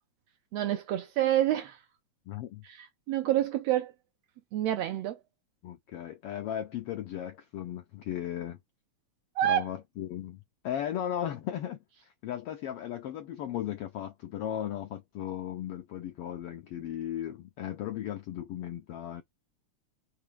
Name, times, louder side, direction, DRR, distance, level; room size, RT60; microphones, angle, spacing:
voice 1, 0.5-1.8 2.6-3.9 4.5-5.2 9.4-9.7, right 12 dB, 75° right, 1.5 m, -28 dB
voice 2, 2.3-2.6 5.6-8.6 9.4-19.2, left 11 dB, 80° left, 1.3 m, -36 dB
4.9 x 3.2 x 3.2 m
omnidirectional pair, 3.4 m